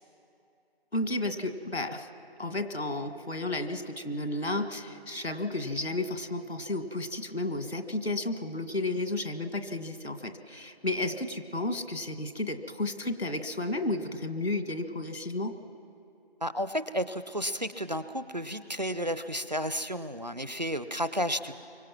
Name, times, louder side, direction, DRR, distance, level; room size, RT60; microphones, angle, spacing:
voice 1, 0.9-2.1 2.4-15.5, left 2 dB, 85° left, 7 dB, 1.8 m, -32 dB
voice 2, 16.4-21.5, equal, 45° right, 13 dB, 0.6 m, -32 dB
24.5 x 23.5 x 6.0 m, 2.7 s
figure-of-eight pair, 175°, 31 cm